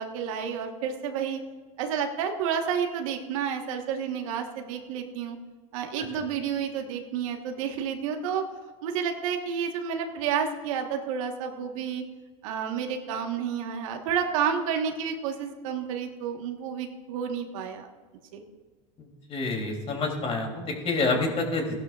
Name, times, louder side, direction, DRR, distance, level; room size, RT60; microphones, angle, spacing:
voice 1, 0.0-1.4 1.8-5.4 5.7-8.5 8.8-12.0 12.4-17.9 18.3-18.4, right 7 dB, 70° right, 4 dB, 1.5 m, -30 dB
voice 2, 19.3-21.8, left 3 dB, 35° left, 1 dB, 3.3 m, -28 dB
17.0 x 11.5 x 2.5 m, 1.4 s
hypercardioid pair, 105°, 18 cm